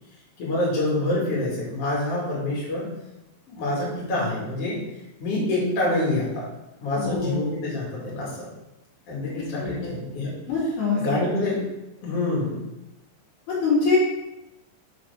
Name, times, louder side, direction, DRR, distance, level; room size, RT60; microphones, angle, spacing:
voice 1, 0.4-2.9 3.5-4.8 5.2-6.4 6.8-8.5 9.1-10.3 11.0-11.6 12.0-12.7, left 2 dB, 50° left, -5 dB, 2.8 m, -26 dB
voice 2, 6.9-7.5 9.4-9.9 10.5-11.3 13.5-14.0, left 4 dB, 75° left, -9 dB, 3.4 m, -25 dB
5.4 x 5.1 x 4.9 m, 0.97 s
omnidirectional pair, 3.7 m